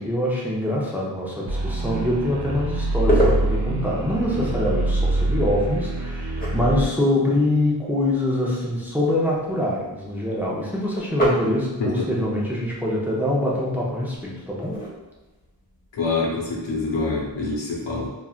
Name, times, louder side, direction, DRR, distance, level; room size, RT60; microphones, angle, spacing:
voice 1, 0.0-14.8, left 1 dB, 5° right, -5 dB, 0.6 m, -24 dB
sound 1, 1.5-6.9, right 2 dB, 60° right, 0.6 m, -25 dB
sound 2, 2.2-17.4, equal, 20° left, 0.9 m, -32 dB
voice 2, 16.0-18.1, left 3 dB, 75° left, -4 dB, 0.9 m, -25 dB
3.1 x 2.4 x 2.4 m, 1.2 s
wide cardioid pair, 75°, 43 cm